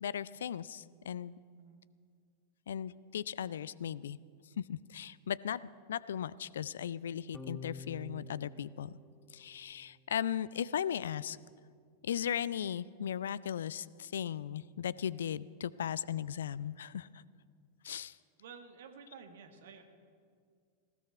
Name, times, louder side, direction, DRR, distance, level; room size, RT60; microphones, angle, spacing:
voice 1, 0.0-1.3 2.7-4.2 4.6-5.6 5.9-9.0 9.3-11.4 12.0-17.2 17.8-18.2, left 9 dB, 65° left, 19 dB, 0.4 m, -37 dB
sound 1, 7.3-9.9, left 3 dB, 5° left, 1.5 m, -48 dB
voice 2, 18.4-19.8, right 6 dB, 60° right, 6 dB, 1.6 m, -52 dB
19.5 x 16.0 x 4.5 m, 2.1 s
figure-of-eight pair, 90°, 0 cm